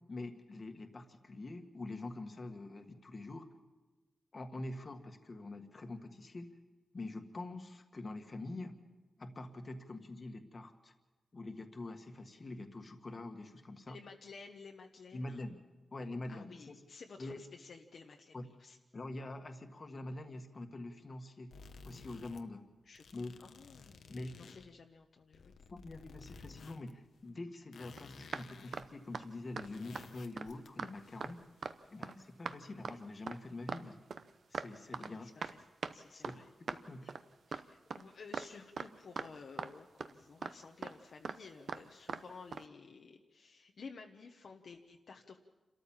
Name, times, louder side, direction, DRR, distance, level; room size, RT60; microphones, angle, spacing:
voice 1, 0.1-3.5 4.3-6.5 6.9-8.8 9.2-10.9 11.3-14.0 15.1-15.6 15.9-16.8 17.2-17.4 18.3-18.4 18.9-21.5 21.8-22.6 23.1-23.3 24.1-24.5 25.7-31.4 31.9-34.0 34.5-35.3 36.1-36.4 36.9-37.1, left 2 dB, 30° left, 6 dB, 1.6 m, -45 dB
voice 2, 13.9-15.4 16.3-18.8 22.9-23.0 23.4-24.0 24.2-25.5 32.5-32.8 35.0-35.6 35.9-36.5 37.5-45.4, left 4 dB, 55° left, 3 dB, 1.1 m, -53 dB
sound 1, 21.5-22.4 22.9-24.7 25.2-26.9 27.2-27.3 27.7-28.9 29.1-29.2 29.5-31.9, left 4 dB, 80° left, 1.2 m, -55 dB
sound 2, 28.0-28.1 28.3-28.5 28.7-28.9 29.1-29.2 29.6-29.7 29.9-30.1 30.4-30.5 30.8-30.9 31.2-31.3 31.6-31.7 32.0-32.1 32.5-32.6 32.8-33.0 33.3-33.4 33.7-33.9 34.1-34.7 34.9-35.1 35.4-35.5 35.8-35.9 36.2-36.4 36.7-36.8 37.1-37.2 37.5-37.6 37.9-38.0 38.3-38.5 38.8-38.9 39.2-39.3 39.6-39.7 40.0-40.1 40.4-40.5 40.8-40.9 41.2-41.4 41.7-41.8 42.1-42.2 42.5-42.6, right 5 dB, 60° right, 0.8 m, -40 dB
28.5 x 13.5 x 7.2 m, 1.2 s
wide cardioid pair, 155°, 0 cm